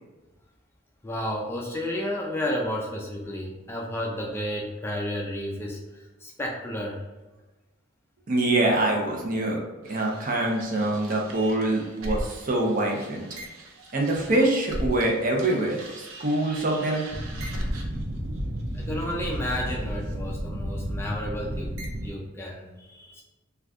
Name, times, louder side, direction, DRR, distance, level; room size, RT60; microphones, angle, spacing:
voice 1, 1.0-7.0 18.7-21.7 22.0-23.2, left 1 dB, 10° left, -2 dB, 0.3 m, -32 dB
voice 2, 8.3-9.6 9.9-13.3 13.9-17.0, right 2 dB, 40° right, 0 dB, 0.6 m, -25 dB
sound 1, 9.9-15.1 15.4-22.1, equal, 90° right, 0.6 m, -34 dB
2.5 x 2.3 x 3.4 m, 1.1 s
head